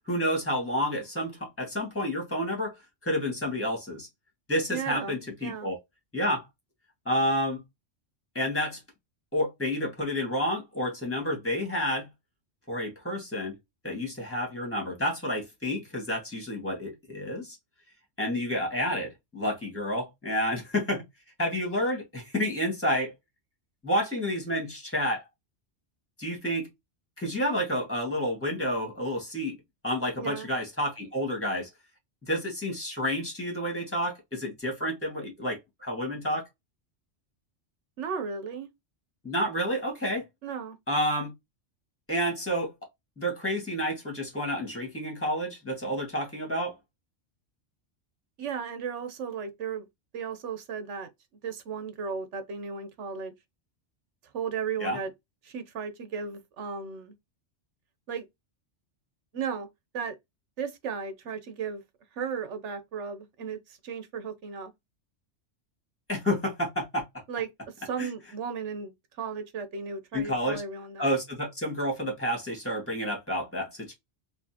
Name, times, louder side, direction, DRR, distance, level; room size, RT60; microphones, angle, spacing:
voice 1, 0.1-2.7 3.0-4.1 4.5-5.8 6.1-6.5 7.1-7.6 8.3-8.8 9.3-12.1 12.7-13.6 13.8-17.6 18.2-21.0 21.4-23.1 23.8-25.2 26.2-26.7 27.2-29.6 29.8-31.7 32.2-36.5 39.2-40.3 40.9-41.3 42.1-42.7 43.2-46.8 54.8-55.0 66.1-67.0 68.0-68.1 70.1-70.6 71.0-73.9, equal, 10° left, 2.0 m, -30 dB
voice 2, 4.7-5.7 30.2-30.5 38.0-38.7 40.4-40.8 48.4-49.9 50.1-51.1 51.4-53.3 54.3-55.1 55.4-57.1 58.1-58.2 59.3-59.7 59.9-60.1 60.6-61.8 62.1-64.7 67.3-67.5 67.8-68.9 69.2-71.1, right 6 dB, 75° right, 1.2 m, -35 dB
4.3 x 2.8 x 2.9 m
omnidirectional pair, 1.2 m